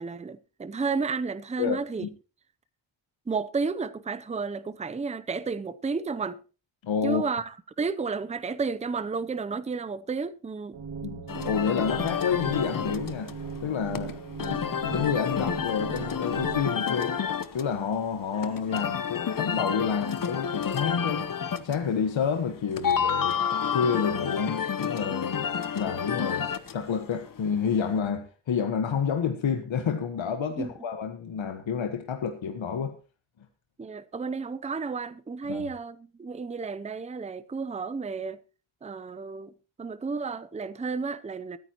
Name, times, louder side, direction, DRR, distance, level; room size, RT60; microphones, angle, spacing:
voice 1, 0.0-2.0 3.3-6.4 7.0-10.8 18.7-18.8 30.6-30.7 33.8-38.4 38.8-39.5 39.8-41.6, right 4 dB, 15° right, 0.5 m, -32 dB
voice 2, 1.6-2.1 6.8-7.2 11.0-13.3 13.6-14.2 14.8-17.1 17.5-21.3 21.6-23.4 23.7-25.5 25.7-33.0 35.5-35.7, left 6 dB, 65° left, 1.4 m, -29 dB
sound 1, 10.7-16.7, right 5 dB, 60° right, 2.6 m, -38 dB
sound 2, 11.3-28.0, left 7 dB, 40° left, 0.9 m, -30 dB
23.0 x 9.4 x 3.0 m
wide cardioid pair, 135°, 50 cm